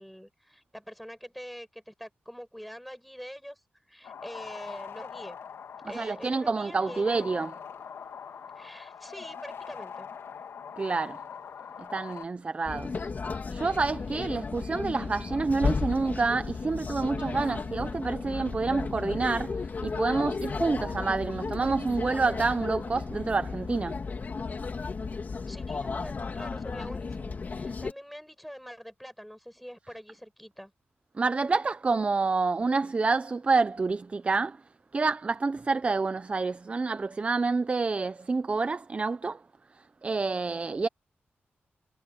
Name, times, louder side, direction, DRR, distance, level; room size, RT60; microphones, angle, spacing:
voice 1, 0.0-3.6 3.9-5.4 5.8-7.3 8.5-10.1 25.5-30.7, equal, ahead, 7.6 m, -44 dB
sound 1, 4.0-12.2, left 7 dB, 80° left, 2.0 m, -43 dB
voice 2, 5.9-7.5 10.8-11.2 11.9-13.1 13.5-24.0 31.2-34.6 34.9-39.4 40.0-40.9, right 4 dB, 30° right, 0.6 m, -28 dB
sound 2, 12.6-27.9, left 4 dB, 45° left, 2.9 m, -34 dB
wide cardioid pair, 130°, 4 cm